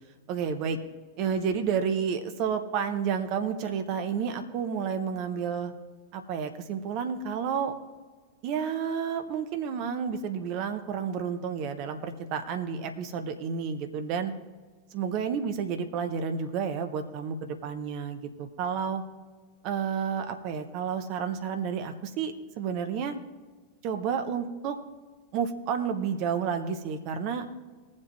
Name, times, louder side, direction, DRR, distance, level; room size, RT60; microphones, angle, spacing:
voice 1, 0.3-0.8 1.2-5.7 6.1-7.7 8.4-14.3 14.9-19.0 19.6-23.1 23.8-24.8 25.3-27.4, right 7 dB, 40° right, 7 dB, 1.1 m, -30 dB
20.0 x 7.6 x 3.2 m, 1.4 s
figure-of-eight pair, 90°, 0 cm